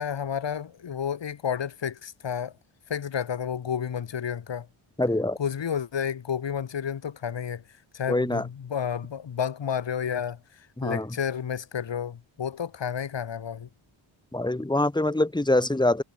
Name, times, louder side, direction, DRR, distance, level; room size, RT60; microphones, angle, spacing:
voice 1, 0.0-2.5 2.9-4.7 5.4-7.6 7.9-13.7, left 8 dB, 60° left, 4.1 m, -31 dB
voice 2, 5.0-5.4 8.1-8.5 10.8-11.1 14.3-16.0, left 2 dB, 10° left, 2.4 m, -24 dB
wide cardioid pair, 120°, 48 cm